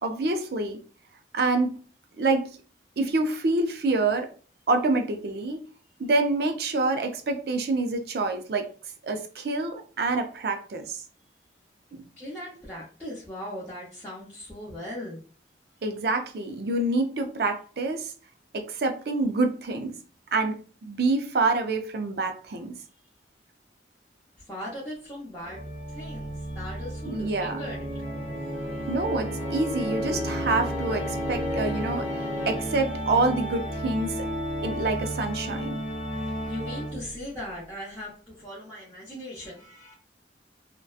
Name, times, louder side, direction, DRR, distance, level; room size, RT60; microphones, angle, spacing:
voice 1, 0.0-0.8 1.3-1.8 2.2-2.6 3.0-4.3 4.7-5.6 6.0-8.7 9.0-11.0 11.9-12.0 15.8-18.1 18.5-19.9 20.3-20.5 20.8-22.8 27.1-27.6 28.9-34.3 34.6-35.8, right 3 dB, 60° right, 6 dB, 0.4 m, -27 dB
voice 2, 12.2-15.2 24.5-25.6 25.9-27.9 28.7-28.9 32.3-32.5 35.9-39.9, left 1 dB, 10° left, -8 dB, 0.7 m, -39 dB
Organ, 25.4-37.2, equal, 10° right, 1.0 m, -32 dB
2.6 x 2.1 x 2.3 m, 0.40 s
head